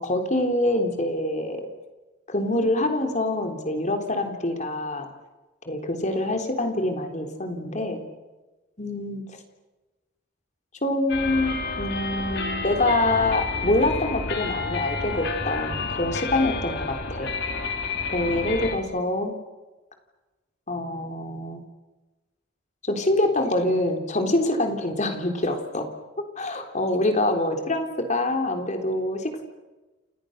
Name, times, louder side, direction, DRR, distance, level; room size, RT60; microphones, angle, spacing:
voice 1, 0.0-1.7 2.3-5.1 5.7-8.0 8.8-9.4 10.8-17.3 18.1-19.3 20.7-21.6 22.8-25.9 26.4-29.4, left 1 dB, 35° left, 5 dB, 3.6 m, -25 dB
sound 1, 11.1-18.8, left 4 dB, 55° left, 3.4 m, -30 dB
29.5 x 28.5 x 6.6 m, 1.2 s
head